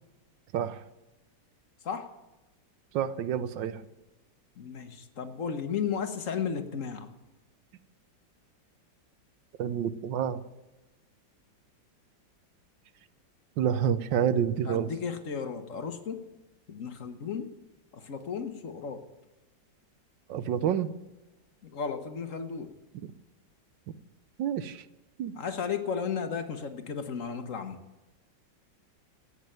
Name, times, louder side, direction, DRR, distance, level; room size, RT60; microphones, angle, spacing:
voice 1, 0.5-0.8 2.9-3.8 9.6-10.4 13.6-14.9 20.3-20.9 24.4-24.8 25.2-25.3, right 9 dB, 85° right, 14 dB, 1.5 m, -28 dB
voice 2, 4.6-7.1 14.6-16.2 16.7-17.5 17.9-19.1 21.6-22.7 25.3-27.8, left 6 dB, 50° left, 8 dB, 1.4 m, -34 dB
17.0 x 6.7 x 9.1 m, 1.1 s
omnidirectional pair, 2.0 m